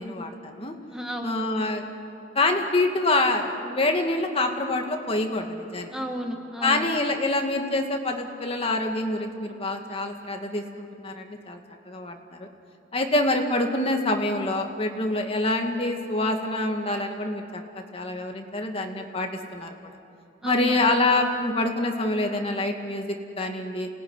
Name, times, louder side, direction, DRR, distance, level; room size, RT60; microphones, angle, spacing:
voice 1, 0.0-0.7 1.2-1.8 2.4-5.9 6.6-11.6 11.9-12.5 12.9-17.6 17.9-19.7 20.4-23.9, left 2 dB, 35° left, 3 dB, 2.2 m, -26 dB
voice 2, 0.9-1.5 5.9-6.9 20.4-20.9, equal, 5° right, 2 dB, 1.4 m, -32 dB
28.0 x 19.5 x 9.7 m, 2.6 s
head